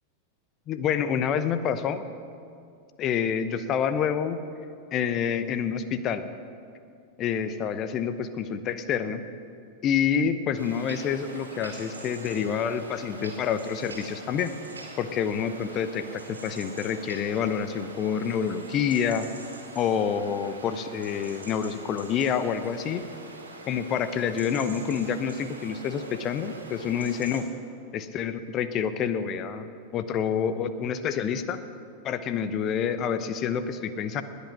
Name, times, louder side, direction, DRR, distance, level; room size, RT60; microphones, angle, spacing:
voice 1, 0.7-2.0 3.0-4.4 4.9-6.2 7.2-9.2 9.8-14.5 15.0-19.3 19.7-23.0 23.7-27.4 27.9-31.6 32.0-34.2, left 7 dB, 35° left, 11 dB, 0.8 m, -28 dB
sound 1, 10.6-27.4, right 3 dB, 75° right, 2.2 m, -43 dB
20.5 x 8.4 x 6.1 m, 2.4 s
figure-of-eight pair, 90°, 0 cm